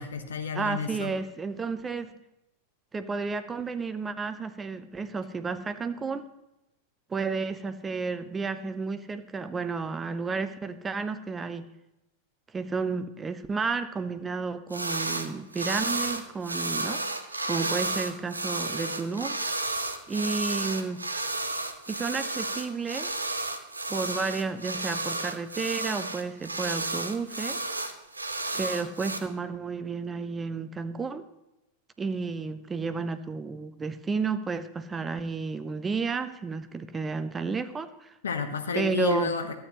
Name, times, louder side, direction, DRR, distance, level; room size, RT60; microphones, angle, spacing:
voice 1, 0.0-1.1 38.2-39.5, left 5 dB, 70° left, 7 dB, 1.0 m, -30 dB
voice 2, 0.5-2.1 2.9-6.3 7.1-11.7 12.5-17.0 17.4-19.4 20.1-21.0 21.9-23.1 23.9-27.6 28.5-31.3 32.0-38.1 38.7-39.3, right 4 dB, 15° right, 11 dB, 0.6 m, -32 dB
sound 1, 14.7-15.3 15.5-29.2, right 2 dB, 80° right, 0.7 m, -32 dB
12.5 x 8.7 x 3.0 m, 0.91 s
figure-of-eight pair, 90°, 0 cm